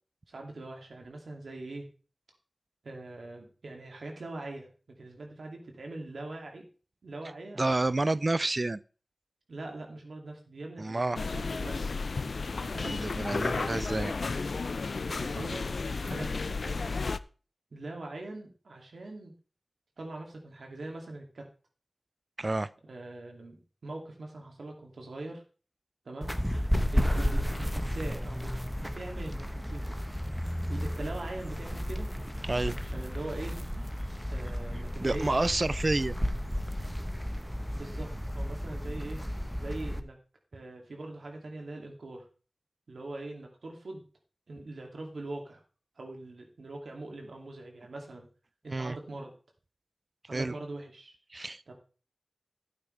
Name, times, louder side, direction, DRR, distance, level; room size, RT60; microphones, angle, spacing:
voice 1, 0.3-1.9 2.8-6.6 7.0-7.6 9.5-11.9 12.6-13.0 13.3-14.0 15.1-15.8 16.0-17.0 17.7-19.3 20.0-21.4 22.8-25.4 26.0-26.4 26.9-28.5 28.8-29.9 30.7-32.1 32.8-33.6 34.3-35.5 37.7-39.2 39.6-40.2 40.5-42.2 42.9-44.0 44.5-45.6 46.0-48.3 48.6-49.3 50.3-51.1 51.7-51.8, right 2 dB, 85° right, 2 dB, 2.5 m, -42 dB
voice 2, 7.6-8.8 10.8-11.2 12.8-14.1 22.4-22.7 32.4-32.8 35.0-36.1 48.7-49.0 50.3-50.5 51.3-51.7, right 2 dB, 45° right, 17 dB, 0.4 m, -29 dB
sound 1, 11.2-17.2, left 4 dB, 80° left, 0.4 m, -33 dB
sound 2, 26.2-40.0, equal, 5° left, 1.1 m, -33 dB
12.0 x 8.8 x 3.3 m, 0.36 s
cardioid pair, 45°, 0 cm